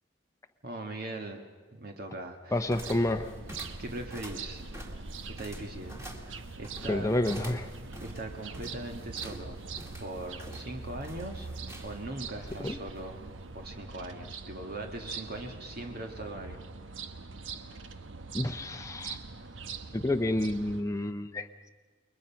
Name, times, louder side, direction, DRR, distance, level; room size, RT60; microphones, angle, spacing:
voice 1, 0.6-1.5 1.7-2.6 3.8-4.6 5.4-7.1 8.0-9.6 10.0-11.5 11.8-13.2 13.5-16.7, right 2 dB, 55° right, 3 dB, 1.8 m, -40 dB
voice 2, 2.5-3.3 6.9-7.7 12.6-12.8 18.3-19.2 19.9-21.7, left 1 dB, 15° left, 5 dB, 0.8 m, -29 dB
sound 1, 2.6-13.8, equal, 15° right, 2.1 m, -47 dB
sound 2, 2.7-20.8, right 4 dB, 80° right, 1.1 m, -43 dB
28.5 x 22.0 x 5.8 m, 1.4 s
head